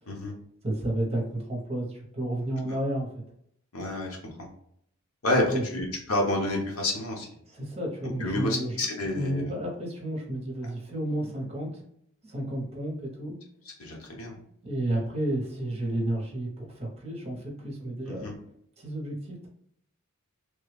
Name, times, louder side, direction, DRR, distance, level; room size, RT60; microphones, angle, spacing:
voice 1, 0.6-3.1 5.3-5.6 7.5-8.7 9.1-11.8 12.2-13.4 14.6-18.3 18.8-19.5, right 1 dB, 30° right, -1 dB, 0.9 m, -31 dB
voice 2, 3.7-4.5 5.2-7.3 8.2-9.6 13.6-14.4 18.1-18.3, left 2 dB, 80° left, 0 dB, 0.9 m, -29 dB
3.2 x 2.4 x 3.3 m, 0.70 s
head